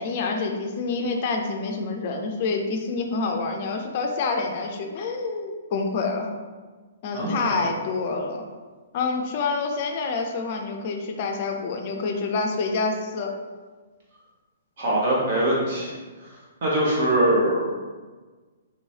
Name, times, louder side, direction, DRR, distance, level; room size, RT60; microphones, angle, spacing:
voice 1, 0.0-6.3 7.0-8.4 8.9-13.3, left 4 dB, 45° left, 3 dB, 0.4 m, -27 dB
voice 2, 7.1-7.6 14.8-15.9 16.6-17.6, right 1 dB, 55° right, -5 dB, 1.2 m, -22 dB
3.0 x 3.0 x 2.8 m, 1.4 s
figure-of-eight pair, 125°, 0 cm